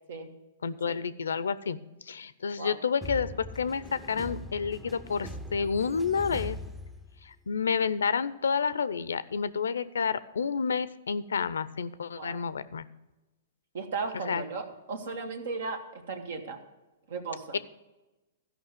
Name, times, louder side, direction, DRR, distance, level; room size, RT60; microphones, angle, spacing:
voice 1, 0.6-1.8 2.1-6.6 7.2-12.8 14.1-14.4 17.5-17.6, left 6 dB, 90° left, 16 dB, 0.5 m, -30 dB
sound 1, 3.0-7.5, equal, 5° right, 0.6 m, -41 dB
voice 2, 13.7-16.6 17.1-17.6, right 4 dB, 70° right, 6 dB, 1.7 m, -36 dB
13.0 x 5.5 x 6.7 m, 1.1 s
hypercardioid pair, 130°, 0 cm